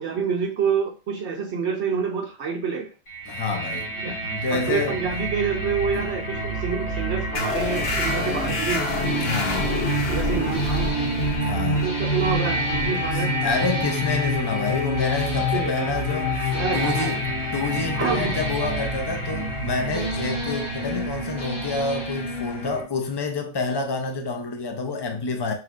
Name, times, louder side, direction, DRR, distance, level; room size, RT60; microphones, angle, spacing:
voice 1, 0.0-2.9 4.0-4.2 4.5-8.9 10.1-10.9 11.7-13.3 15.5-15.9 16.5-17.2 18.0-18.4 22.6-22.9, right 5 dB, 70° right, 0.8 m, -27 dB
sound 1, 3.1-22.8, equal, 90° left, 1.9 m, -28 dB
voice 2, 3.3-3.9 4.3-5.0 5.9-6.1 9.2-9.8 11.4-11.9 13.1-17.3 17.5-25.5, left 3 dB, 40° left, 0.3 m, -28 dB
sound 2, 7.3-14.5, left 3 dB, 65° left, 1.3 m, -29 dB
sound 3, 9.0-22.7, equal, 25° left, 1.3 m, -35 dB
5.8 x 2.8 x 2.4 m
omnidirectional pair, 1.3 m